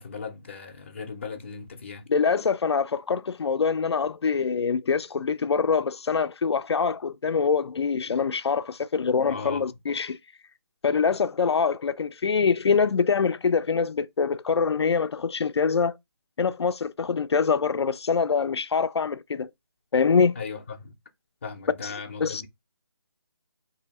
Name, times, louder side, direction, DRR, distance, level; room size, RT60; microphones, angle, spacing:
voice 1, 0.0-2.1 9.3-9.7 20.4-20.9 21.4-22.5, left 5 dB, 30° left, 0.5 m, -37 dB
voice 2, 2.1-10.2 10.8-15.9 16.4-19.5 19.9-20.4 21.8-21.9 22.2-22.4, left 5 dB, 90° left, 0.4 m, -24 dB
2.7 x 2.7 x 4.0 m
hypercardioid pair, 170°, 13 cm